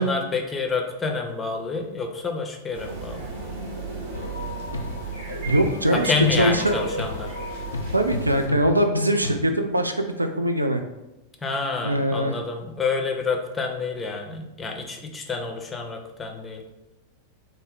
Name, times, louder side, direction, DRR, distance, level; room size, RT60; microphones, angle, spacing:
voice 1, 0.0-3.2 5.9-7.3 11.4-16.6, left 4 dB, 15° left, 2 dB, 0.5 m, -28 dB
sound 1, 2.7-8.5, right 4 dB, 55° right, 0.9 m, -35 dB
sound 2, 4.1-9.4, left 3 dB, 75° left, 0.3 m, -33 dB
voice 2, 5.4-6.8 7.9-10.8 11.8-12.3, right 1 dB, 85° right, 7 dB, 0.3 m, -22 dB
3.6 x 2.0 x 3.9 m, 1.0 s
figure-of-eight pair, 90°, 0 cm